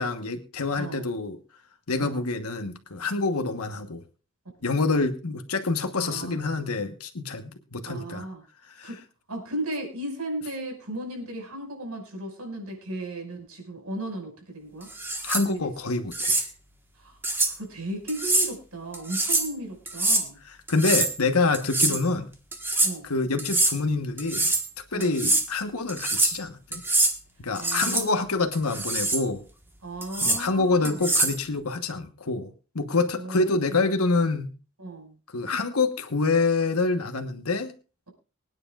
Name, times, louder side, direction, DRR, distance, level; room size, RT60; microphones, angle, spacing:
voice 1, 0.0-1.4 1.9-4.0 4.6-8.2 8.8-8.9 15.2-16.5 20.7-22.3 23.1-24.5 24.9-26.8 27.4-29.4 30.2-34.5 35.3-37.7, left 3 dB, 85° left, 7 dB, 1.2 m, -26 dB
voice 2, 5.9-6.3 7.8-8.4 8.8-9.0 9.3-14.9 15.5-15.7 16.9-17.2 17.5-20.4 21.9-22.1 22.8-23.1 24.9-25.2 27.6-28.5 29.8-31.1 33.2-33.7 34.8-35.2, right 1 dB, 85° right, 2 dB, 5.6 m, -36 dB
sound 1, 14.9-15.4 16.1-16.5 17.2-17.5 18.1-18.5 18.9-19.5 19.9-20.2 20.7-21.2 21.5-22.0 22.5-22.9 23.4-23.8 24.2-24.7 25.0-25.5 25.9-26.4 26.7-27.1 27.5-28.1 28.5-29.2 30.0-30.4 30.8-31.4, right 2 dB, 10° right, 1.4 m, -24 dB
24.5 x 9.7 x 2.4 m, 0.34 s
head